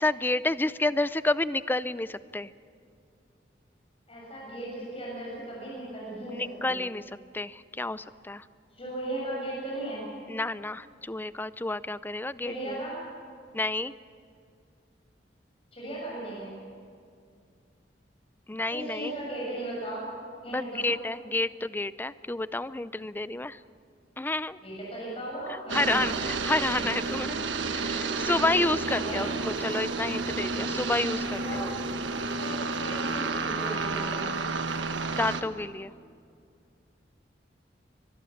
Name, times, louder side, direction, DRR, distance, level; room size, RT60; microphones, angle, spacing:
voice 1, 0.0-2.5 6.3-7.0 7.3-8.5 10.3-12.8 13.5-13.9 18.5-19.1 20.5-23.6 24.2-24.6 25.5-27.4 27.7-31.7 35.1-35.9, left 2 dB, 10° left, 16 dB, 0.5 m, -30 dB
voice 2, 4.1-6.8 8.7-10.0 12.4-13.0 15.7-16.6 18.7-20.1 20.4-20.9 24.6-26.1 28.8-29.4 31.4-31.7 32.4-32.5 32.8-34.3, right 1 dB, 30° left, -5 dB, 7.2 m, -36 dB
sound 1, 25.7-35.4, right 3 dB, 85° right, 1.3 m, -31 dB
23.5 x 21.0 x 7.2 m, 2.3 s
head